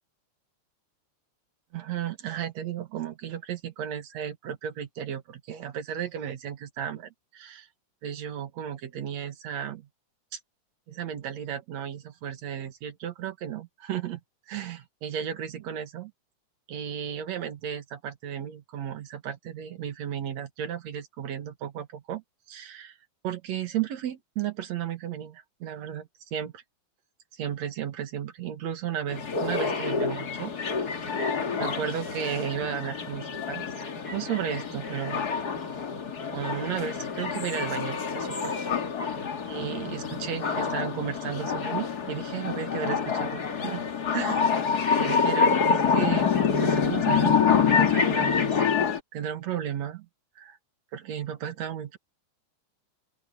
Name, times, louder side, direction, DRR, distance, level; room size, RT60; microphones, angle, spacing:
voice 1, 1.7-7.7 8.0-9.9 10.3-10.4 10.9-14.2 14.5-16.1 16.7-22.2 22.5-23.0 23.2-26.6 27.3-31.1 31.6-33.7 34.1-35.3 36.3-38.5 39.5-43.8 44.1-44.5 44.9-46.3 46.6-48.6 49.1-50.1 50.4-50.6 50.9-52.0, right 9 dB, 65° right, 2.8 m, -34 dB
sound 1, 29.1-49.0, left 6 dB, 35° left, 1.9 m, -27 dB
open air
omnidirectional pair, 3.5 m